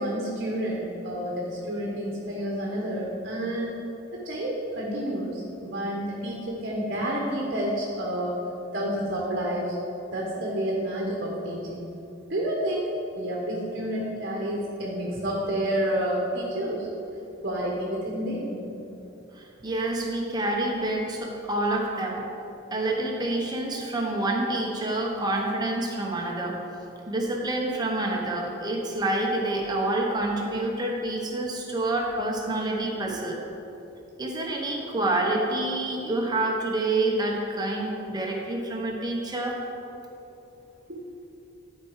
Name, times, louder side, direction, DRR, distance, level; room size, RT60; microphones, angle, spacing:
voice 1, 0.0-3.8 4.2-8.3 8.7-9.8 10.1-11.9 12.3-12.9 13.2-16.9 17.4-18.6 33.0-33.1 40.9-41.0, right 1 dB, 50° right, -3 dB, 1.2 m, -29 dB
voice 2, 19.3-22.3 22.7-26.6 27.1-33.4 34.2-39.6, right 2 dB, 20° right, 0 dB, 1.0 m, -27 dB
11.5 x 4.7 x 4.9 m, 2.9 s
head